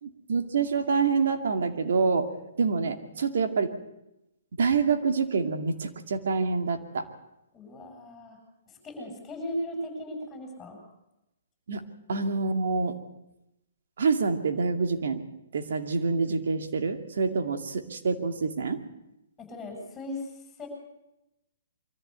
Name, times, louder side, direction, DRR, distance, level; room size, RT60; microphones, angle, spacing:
voice 1, 0.0-2.3 2.6-3.7 4.6-7.1 11.7-11.8 12.1-12.9 14.0-15.2 15.5-18.8, right 4 dB, 70° right, 6 dB, 2.4 m, -26 dB
voice 2, 7.5-8.4 8.7-10.8 19.4-20.7, left 1 dB, 15° left, 3 dB, 7.7 m, -37 dB
23.5 x 14.5 x 8.3 m, 0.90 s
hypercardioid pair, 140°, 0 cm